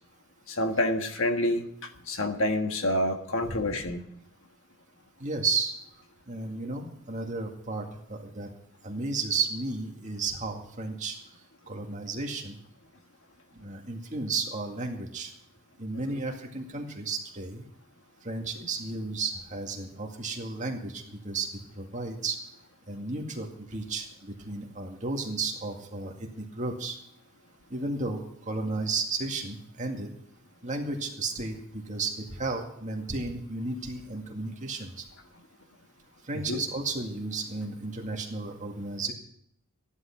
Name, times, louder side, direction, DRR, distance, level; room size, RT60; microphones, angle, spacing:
voice 1, 0.5-4.1 36.5-36.6, left 1 dB, 60° left, 6 dB, 1.5 m, -28 dB
voice 2, 5.2-5.8 6.3-8.5 8.8-11.2 11.7-12.6 13.5-15.3 15.8-17.6 18.2-21.5 21.8-22.4 22.9-27.0 27.7-30.1 30.6-35.0 36.3-39.1, right 3 dB, 35° right, 1 dB, 2.1 m, -33 dB
15.0 x 11.5 x 5.9 m, 0.70 s
head